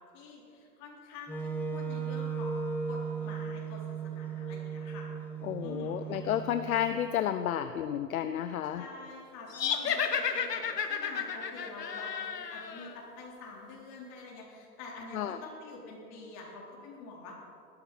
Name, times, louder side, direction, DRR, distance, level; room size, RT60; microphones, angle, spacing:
voice 1, 0.1-5.1 5.6-6.3 8.6-17.3, left 3 dB, 35° left, -3 dB, 3.8 m, -47 dB
Wind instrument woodwind instrument, 1.3-7.3, right 5 dB, 5° left, 0.8 m, -37 dB
voice 2, 5.4-8.8 15.1-15.4, left 10 dB, 60° left, 10 dB, 0.7 m, -31 dB
sound 1, 9.5-12.9, left 7 dB, 80° left, 1.3 m, -32 dB
17.0 x 13.0 x 4.2 m, 2.7 s
hypercardioid pair, 125°, 48 cm